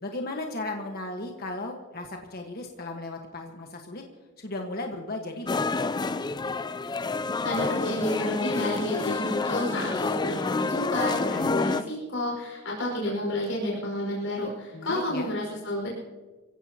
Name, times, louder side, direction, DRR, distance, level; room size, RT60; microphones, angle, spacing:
voice 1, 0.0-4.0 4.4-6.0 14.7-15.3, left 2 dB, 50° left, 2 dB, 1.4 m, -36 dB
sound 1, 5.5-11.8, left 3 dB, 20° left, 0.4 m, -28 dB
voice 2, 7.4-15.9, left 1 dB, 75° left, -3 dB, 5.2 m, -30 dB
25.5 x 16.5 x 2.9 m, 1.3 s
head